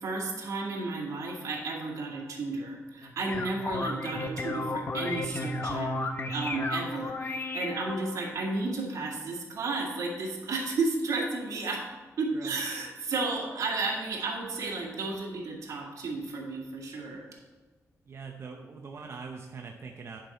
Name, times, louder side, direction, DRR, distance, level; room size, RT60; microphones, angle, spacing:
voice 1, 0.0-5.9 6.3-11.9 12.2-17.3, right 3 dB, 65° right, -2 dB, 2.1 m, -33 dB
sound 1, 3.0-8.3, left 2 dB, 40° left, 0.7 m, -33 dB
voice 2, 18.1-20.2, right 5 dB, 50° right, 2 dB, 0.7 m, -42 dB
10.5 x 5.6 x 4.3 m, 1.4 s
wide cardioid pair, 155°, 6 cm